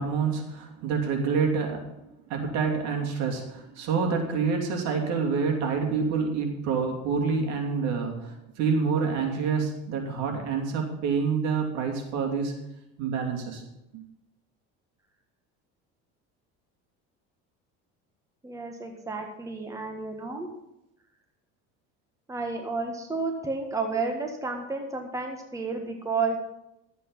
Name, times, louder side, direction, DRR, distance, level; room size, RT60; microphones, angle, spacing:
voice 1, 0.0-1.9 2.3-12.5 13.0-13.6 13.9-14.0, right 5 dB, 65° right, 2 dB, 2.8 m, -27 dB
voice 2, 18.4-20.5 22.3-26.4, right 4 dB, 10° right, 3 dB, 1.6 m, -31 dB
12.0 x 8.3 x 5.5 m, 0.88 s
supercardioid pair, 115°, 30 cm